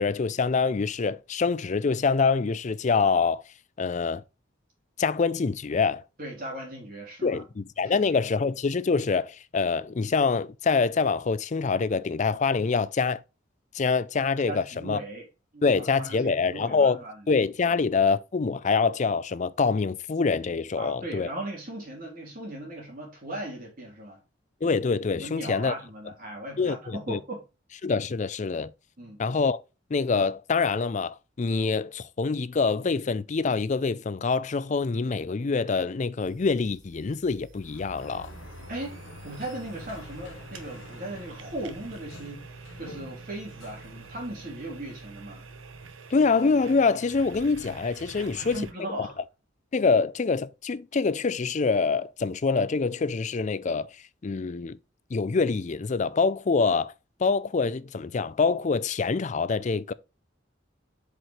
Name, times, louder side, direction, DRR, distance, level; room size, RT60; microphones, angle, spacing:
voice 1, 0.0-3.4 3.8-4.2 5.0-6.0 7.2-13.2 13.7-15.0 15.6-17.0 17.3-21.3 24.6-25.7 26.6-27.2 27.8-28.7 29.2-29.6 29.9-38.3 46.1-48.6 49.0-49.1 49.7-53.9 54.2-54.8 55.1-56.9 57.2-59.9, left 4 dB, 40° left, 0.4 m, -25 dB
voice 2, 6.2-7.4 7.8-8.1 14.5-15.2 15.5-17.8 20.8-24.2 25.2-27.5 29.0-29.2 38.7-39.0 39.2-45.4 48.1-49.2, right 1 dB, 45° right, 3.4 m, -38 dB
sound 1, 36.2-48.7, right 4 dB, 85° right, 0.9 m, -46 dB
Sliding door, 37.6-44.7, left 2 dB, 85° left, 1.1 m, -48 dB
7.6 x 5.0 x 3.2 m
head